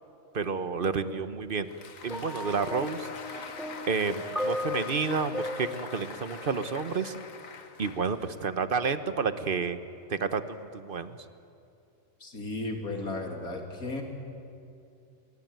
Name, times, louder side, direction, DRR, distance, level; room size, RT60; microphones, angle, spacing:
voice 1, 0.3-1.7 2.0-3.5 3.9-7.1 7.8-9.8 10.1-11.2, right 5 dB, 40° right, 11 dB, 1.2 m, -30 dB
Applause, 1.5-8.6, left 5 dB, 70° left, 1.9 m, -44 dB
sound 1, 2.1-7.2 8.1-8.3, left 1 dB, ahead, 2.1 m, -37 dB
voice 2, 12.2-14.0, left 2 dB, 85° left, 2 dB, 3.6 m, -34 dB
25.5 x 23.0 x 9.3 m, 2.6 s
omnidirectional pair, 1.5 m